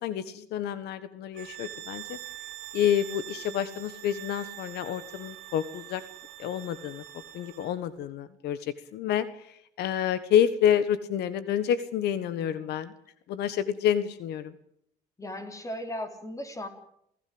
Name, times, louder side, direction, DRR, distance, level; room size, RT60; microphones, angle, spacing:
voice 1, 0.0-2.2 2.7-6.0 6.4-7.0 7.3-12.9 13.3-14.5, left 9 dB, 75° left, 14 dB, 1.4 m, -28 dB
sound 1, 1.3-7.8, right 15 dB, 90° right, 2.5 m, -44 dB
voice 2, 15.2-16.7, left 1 dB, 20° left, 7 dB, 4.2 m, -37 dB
28.0 x 17.0 x 7.9 m, 0.73 s
cardioid pair, 110°, 17 cm